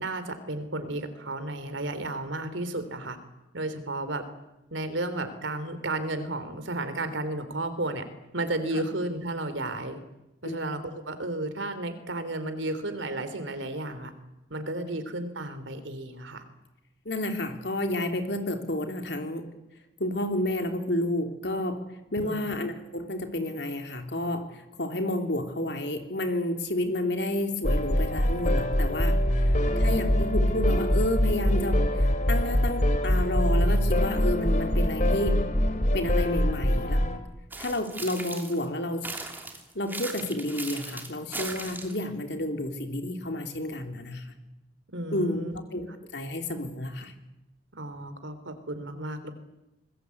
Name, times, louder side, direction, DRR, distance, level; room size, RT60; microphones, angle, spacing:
voice 1, 0.0-3.2 3.5-4.2 4.7-8.0 8.3-10.0 10.4-14.1 14.5-16.4 22.2-22.6 29.6-30.0 44.9-45.6 47.8-49.3, right 2 dB, 90° right, 10 dB, 3.3 m, -33 dB
voice 2, 17.0-19.5 20.0-21.8 22.1-35.5 35.9-37.0 37.6-39.1 39.7-44.3 45.1-47.1, left 1 dB, 60° left, 5 dB, 3.3 m, -30 dB
sound 1, 27.6-37.2, left 1 dB, 40° left, 2.6 m, -24 dB
sound 2, 37.5-38.7 39.0-42.0, right 3 dB, 10° right, 2.7 m, -38 dB
26.0 x 20.5 x 8.5 m, 0.93 s
head